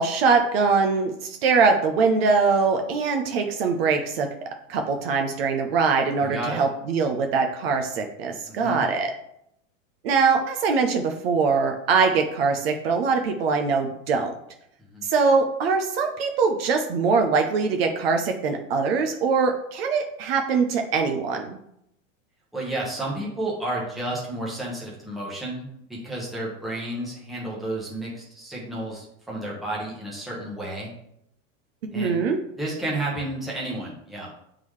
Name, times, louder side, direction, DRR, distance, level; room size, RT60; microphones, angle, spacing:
voice 1, 0.0-4.3 4.7-9.1 10.0-14.3 15.0-21.6 31.9-32.4, right 4 dB, 50° right, 4 dB, 0.7 m, -22 dB
voice 2, 6.2-6.6 8.4-8.8 14.9-15.0 22.5-30.9 31.9-32.2 32.5-34.4, right 1 dB, ahead, -5 dB, 1.0 m, -31 dB
8.1 x 3.8 x 3.2 m, 0.76 s
supercardioid pair, 165°, 40 cm